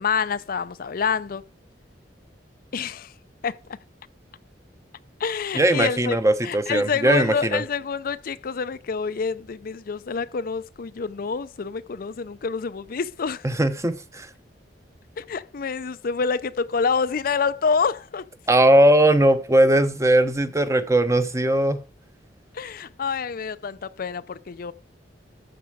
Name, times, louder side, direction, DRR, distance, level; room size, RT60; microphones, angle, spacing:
voice 1, 0.0-1.4 2.7-3.1 3.4-3.6 5.2-6.2 6.4-13.5 15.2-18.2 22.5-24.7, left 5 dB, 55° left, 0.5 m, -27 dB
voice 2, 5.5-7.6 13.4-14.3 18.5-21.8, right 1 dB, 15° right, 0.9 m, -19 dB
13.0 x 7.3 x 4.8 m
head